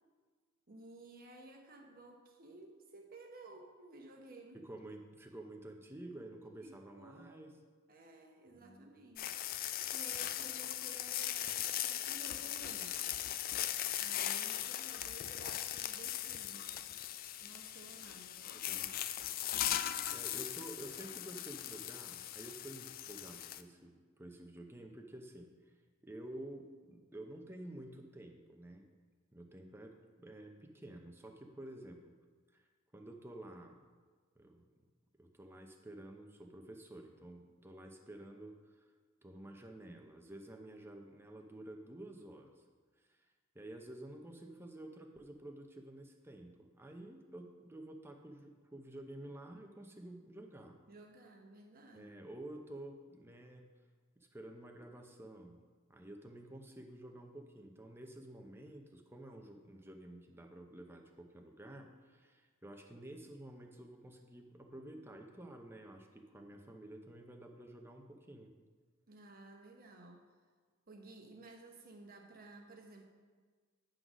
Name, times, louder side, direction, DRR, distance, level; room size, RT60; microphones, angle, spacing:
voice 1, 0.7-4.6 6.6-7.5 7.9-13.0 14.0-16.8 17.4-18.6 50.9-52.2 69.1-70.3 70.9-73.1, right 2 dB, 45° right, 2 dB, 1.0 m, -55 dB
voice 2, 4.5-7.5 8.5-9.0 18.5-18.9 20.1-25.5 26.0-28.9 29.3-29.9 30.2-32.1 32.5-32.7 32.9-33.8 34.4-34.6 35.2-38.9 39.2-42.6 43.0-43.3 43.5-50.8 51.9-53.7 54.2-55.6 55.9-68.5, right 1 dB, 10° right, 3 dB, 0.7 m, -51 dB
sound 1, 9.2-23.6, left 12 dB, 45° left, 0.3 m, -39 dB
9.5 x 3.9 x 6.1 m, 1.5 s
head